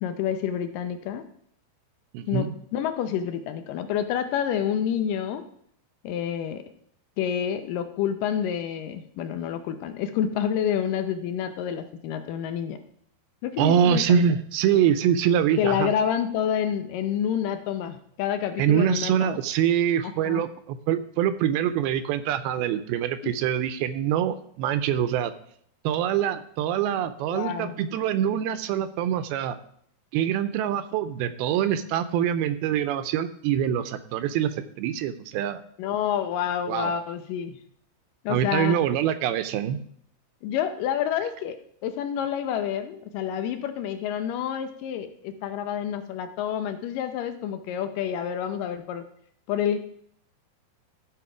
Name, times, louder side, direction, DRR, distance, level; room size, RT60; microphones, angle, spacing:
voice 1, 0.0-1.2 2.3-2.5 2.7-5.4 6.0-6.6 7.2-12.8 13.4-14.2 15.6-19.4 20.3-20.4 23.2-23.3 27.3-27.7 35.8-37.6 38.2-38.8 40.4-49.0 49.5-49.8, left 9 dB, 80° left, 9 dB, 2.0 m, -28 dB
voice 2, 2.1-2.5 13.6-15.9 18.6-25.3 25.8-29.6 30.1-35.6 36.7-36.9 38.3-39.8, right 9 dB, 85° right, 11 dB, 2.3 m, -24 dB
14.5 x 5.1 x 4.9 m, 0.66 s
omnidirectional pair, 4.6 m